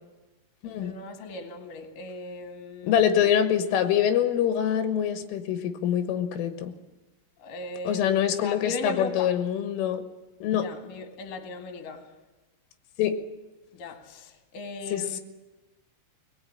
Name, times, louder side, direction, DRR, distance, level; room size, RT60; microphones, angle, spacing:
voice 1, 0.6-3.5 7.4-9.4 10.5-12.1 13.7-15.2, left 3 dB, 55° left, 3.0 m, -38 dB
voice 2, 2.8-6.7 7.9-10.0 10.4-10.7 13.0-13.2 14.9-15.2, left 9 dB, 85° left, 3.8 m, -25 dB
21.5 x 20.0 x 8.9 m
omnidirectional pair, 5.7 m